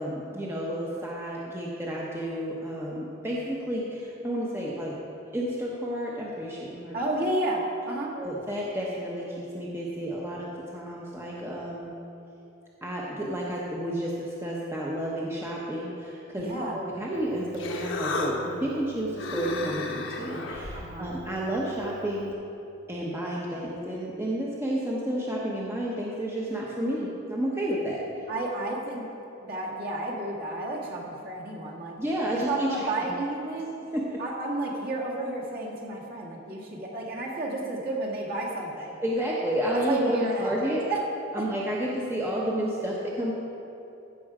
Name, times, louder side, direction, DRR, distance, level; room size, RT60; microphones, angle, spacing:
voice 1, 0.0-4.9 5.3-7.0 8.1-11.9 12.8-16.5 16.7-22.3 22.9-28.2 32.0-33.2 33.9-34.2 39.0-40.8 41.3-43.3, equal, 10° right, -4 dB, 0.9 m, -31 dB
voice 2, 6.9-8.2 16.3-16.8 20.7-21.1 28.3-29.1 29.4-32.0 32.3-33.8 34.2-39.0 39.7-41.0 41.4-41.5, right 2 dB, 45° right, -4 dB, 1.9 m, -31 dB
Human voice, 17.1-22.3, left 2 dB, 65° left, 1.1 m, -35 dB
15.0 x 6.2 x 4.9 m, 2.8 s
head